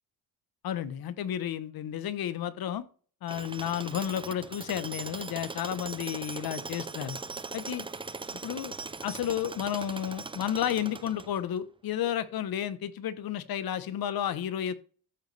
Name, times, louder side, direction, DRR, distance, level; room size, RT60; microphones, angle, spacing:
voice 1, 0.6-2.8 3.2-7.2 7.5-7.8 8.4-8.7 9.0-14.7, left 10 dB, 60° left, 14 dB, 1.0 m, -32 dB
Tools, 3.3-11.6, right 4 dB, 15° right, 0.5 m, -40 dB
13.5 x 6.7 x 3.4 m, 0.42 s
cardioid pair, 125°, 40 cm